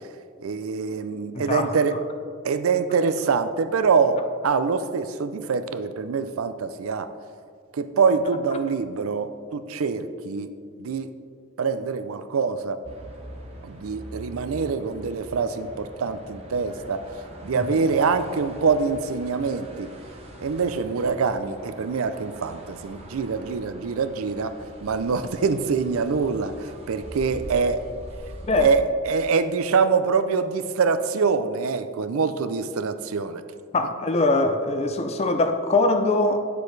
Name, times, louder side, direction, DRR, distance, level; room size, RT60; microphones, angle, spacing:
voice 1, 0.4-2.0 2.4-7.1 7.7-11.1 11.6-12.8 13.6-17.1 17.4-19.9 20.4-24.6 24.8-27.8 28.6-33.4, right 5 dB, 80° right, 11 dB, 0.4 m, -25 dB
voice 2, 1.3-1.7 17.5-17.6 28.5-28.7 33.7-36.4, left 2 dB, 30° left, 7 dB, 0.4 m, -22 dB
sound 1, 12.8-28.8, right 1 dB, 30° right, 0.9 m, -42 dB
9.5 x 6.8 x 3.2 m, 2.1 s
head